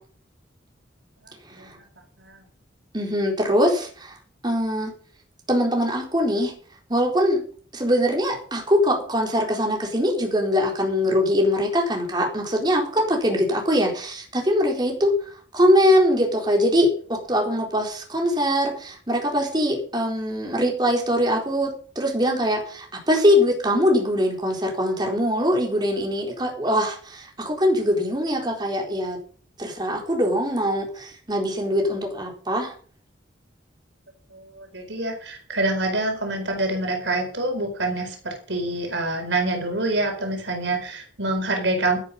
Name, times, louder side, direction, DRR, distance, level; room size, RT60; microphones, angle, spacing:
voice 1, 2.9-4.1 4.4-4.9 5.5-6.5 6.9-7.4 7.7-15.2 15.5-29.2 29.6-32.7, equal, 25° right, 1 dB, 4.1 m, -22 dB
voice 2, 34.3-42.0, right 2 dB, 75° right, 4 dB, 4.6 m, -26 dB
12.5 x 11.0 x 5.4 m, 0.43 s
head